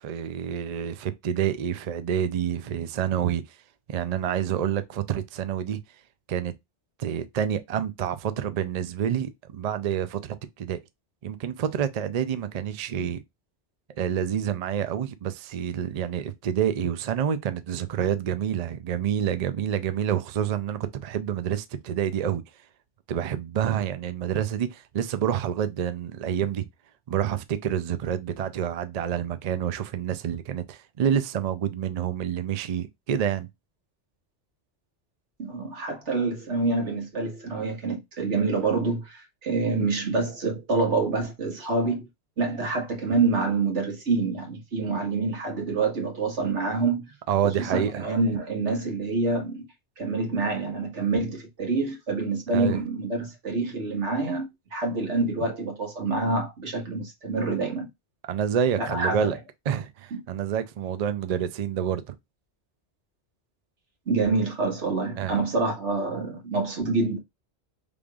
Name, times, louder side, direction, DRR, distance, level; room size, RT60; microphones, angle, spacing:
voice 1, 0.0-3.4 3.9-5.8 6.3-6.5 7.0-10.8 11.2-13.2 14.0-22.4 23.1-26.7 27.1-33.5 47.3-48.1 52.5-52.8 58.3-59.4 59.7-62.1 65.2-65.4, right 9 dB, 50° right, 0.5 m, -28 dB
voice 2, 35.4-42.1 42.4-47.1 47.4-49.6 50.0-57.9 58.9-59.3 64.1-67.2, right 3 dB, 90° right, 1.8 m, -27 dB
5.1 x 3.5 x 2.4 m
omnidirectional pair, 1.2 m